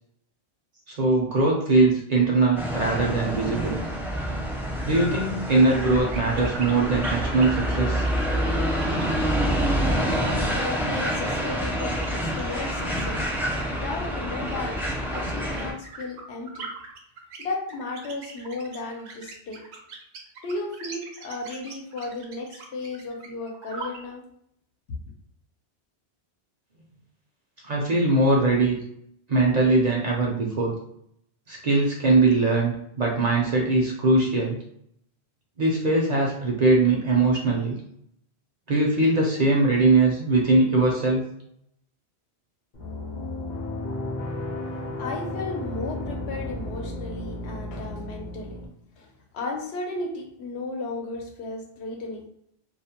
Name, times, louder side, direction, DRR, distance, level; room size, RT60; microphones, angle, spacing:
voice 1, 0.9-3.8 4.8-8.1 27.6-28.8 29.3-30.7 31.5-34.6 35.6-37.8 38.7-41.2, right 2 dB, 50° right, -2 dB, 0.5 m, -21 dB
sound 1, 2.6-15.7, equal, 5° right, 0.4 m, -27 dB
sound 2, 5.6-24.0, right 4 dB, 80° right, 0.9 m, -42 dB
voice 2, 9.8-13.2 13.5-14.8 15.1-16.7 17.4-19.6 20.4-24.2 45.0-48.7 48.9-52.2, left 2 dB, 85° left, 2 dB, 0.9 m, -34 dB
sound 3, 42.7-48.7, left 1 dB, 50° left, 0.7 m, -33 dB
2.4 x 2.0 x 2.8 m, 0.72 s
omnidirectional pair, 1.1 m